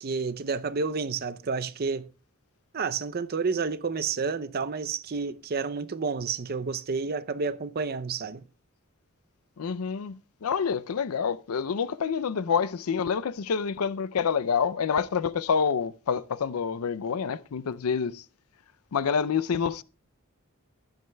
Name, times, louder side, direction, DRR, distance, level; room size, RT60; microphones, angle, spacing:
voice 1, 0.0-2.1 2.7-8.4, right 4 dB, 45° right, 0.5 m, -30 dB
voice 2, 9.6-18.2 18.9-19.8, left 6 dB, 85° left, 0.5 m, -27 dB
15.0 x 10.5 x 2.2 m
head